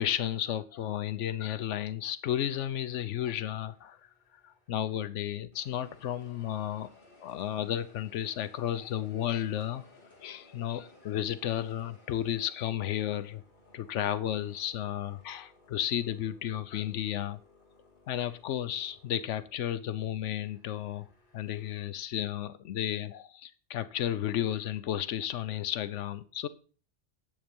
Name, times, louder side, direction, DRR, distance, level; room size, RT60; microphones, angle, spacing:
voice 1, 0.0-4.0 4.4-6.9 7.2-9.9 10.2-13.4 13.7-17.4 18.1-21.1 21.3-26.5, left 11 dB, 90° left, 14 dB, 1.0 m, -33 dB
sound 1, 2.3-5.1 5.5-21.7, left 2 dB, 40° left, 2.6 m, -60 dB
10.5 x 8.2 x 5.2 m, 0.40 s
omnidirectional pair, 1.2 m